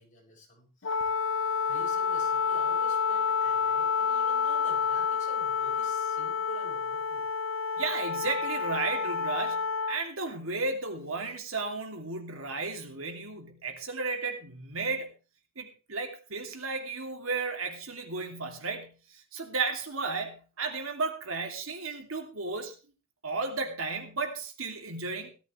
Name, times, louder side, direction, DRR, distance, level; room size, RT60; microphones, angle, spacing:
voice 1, 0.0-7.3, equal, 40° left, -1 dB, 7.0 m, -50 dB
Wind instrument woodwind instrument, 0.8-10.0, left 6 dB, 65° left, 0.8 m, -29 dB
voice 2, 7.8-15.1 15.6-22.7 23.2-25.3, right 4 dB, 80° right, 4 dB, 2.8 m, -34 dB
17.0 x 13.5 x 3.3 m, 0.34 s
head